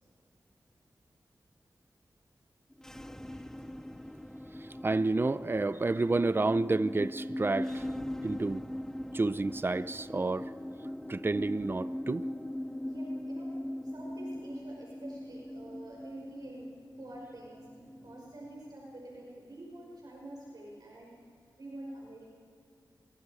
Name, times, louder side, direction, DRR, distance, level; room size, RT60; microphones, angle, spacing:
sound 1, 2.7-18.2, left 1 dB, 5° left, 0.7 m, -40 dB
voice 1, 4.6-7.9 8.2-8.7 9.1-10.5 11.1-12.3, right 3 dB, 30° right, 0.6 m, -30 dB
voice 2, 12.8-13.6 13.8-21.1 21.5-22.3, right 1 dB, 60° right, 5.4 m, -47 dB
28.0 x 24.0 x 5.0 m
cardioid pair, 65°, 8 cm